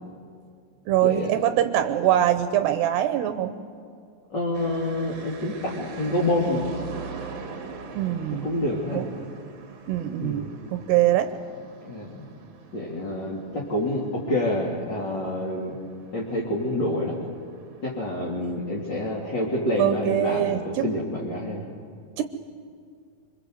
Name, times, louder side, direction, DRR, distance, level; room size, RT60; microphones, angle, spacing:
voice 1, 0.9-3.6 7.9-8.5 8.9-9.1 9.9-11.3 19.8-20.9 22.2-22.3, right 12 dB, 75° right, 9 dB, 2.8 m, -23 dB
voice 2, 4.3-6.7 8.4-9.1 10.2-10.5 11.9-12.3 12.7-15.8 16.1-17.2 17.8-21.6, left 1 dB, 30° left, -3 dB, 3.1 m, -27 dB
sound 1, 4.5-20.0, right 5 dB, 45° right, 2.9 m, -43 dB
26.0 x 25.5 x 8.0 m, 2.3 s
omnidirectional pair, 5.2 m